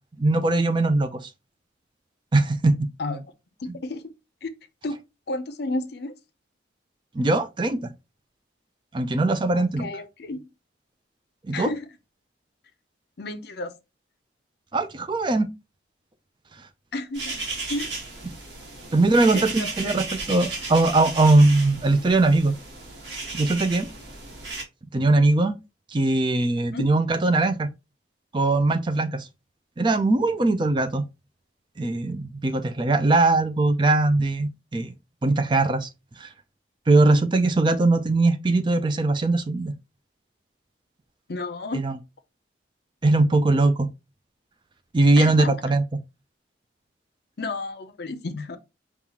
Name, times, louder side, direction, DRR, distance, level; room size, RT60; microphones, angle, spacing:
voice 1, 0.2-1.2 2.3-2.9 3.7-3.8 7.1-7.9 8.9-9.9 11.5-11.7 14.7-15.5 18.9-22.5 23.3-23.9 24.9-25.5 25.9-27.7 28.3-29.3 29.8-31.0 31.8-34.9 35.2-35.9 36.2-36.3 36.9-39.7 41.7-41.9 43.0-43.9 44.9-45.8, right 2 dB, 25° right, 0.4 m, -21 dB
voice 2, 3.6-4.0 4.4-4.5 4.8-5.0 5.3-6.1 9.5-10.4 11.5-11.9 13.2-13.7 16.9-17.4 17.7-17.9 19.3-20.0 26.6-26.8 41.3-41.8 45.2-45.8 47.4-48.6, left 2 dB, 55° left, 0.5 m, -32 dB
sound 1, 17.1-24.6, right 3 dB, 60° right, 1.5 m, -34 dB
5.4 x 2.4 x 2.9 m
head